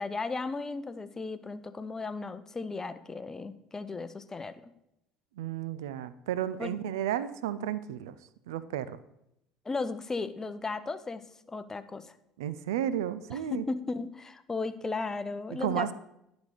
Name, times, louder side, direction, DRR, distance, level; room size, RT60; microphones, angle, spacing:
voice 1, 0.0-4.7 6.6-6.7 9.7-11.2 11.5-12.1 13.3-15.9, left 3 dB, 20° left, 12 dB, 0.6 m, -35 dB
voice 2, 5.4-8.2 8.5-9.0 12.4-13.6 15.6-15.9, right 11 dB, 75° right, 15 dB, 0.3 m, -32 dB
10.5 x 4.1 x 4.9 m, 0.82 s
figure-of-eight pair, 60°, 2 cm